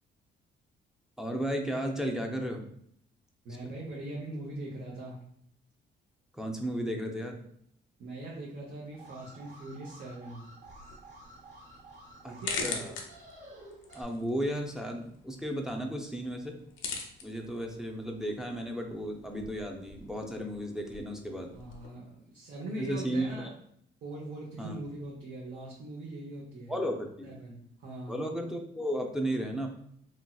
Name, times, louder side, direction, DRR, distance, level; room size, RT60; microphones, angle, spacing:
voice 1, 1.2-2.6 3.6-3.7 6.3-7.4 12.2-13.0 13.9-16.6 17.2-21.5 22.8-23.5 24.6-24.8 26.7-27.3 28.1-29.7, equal, 5° right, 2 dB, 0.4 m, -34 dB
voice 2, 3.4-5.2 8.0-10.4 12.3-12.9 21.5-23.5 24.0-26.8 27.2-28.2, right 1 dB, 65° right, -4 dB, 0.8 m, -41 dB
Alarm, 8.9-14.0, right 2 dB, 40° right, 1.2 m, -51 dB
sound 1, 10.6-21.9, left 4 dB, 90° left, 0.6 m, -44 dB
3.0 x 2.7 x 2.3 m, 0.68 s
cardioid pair, 90°, 20 cm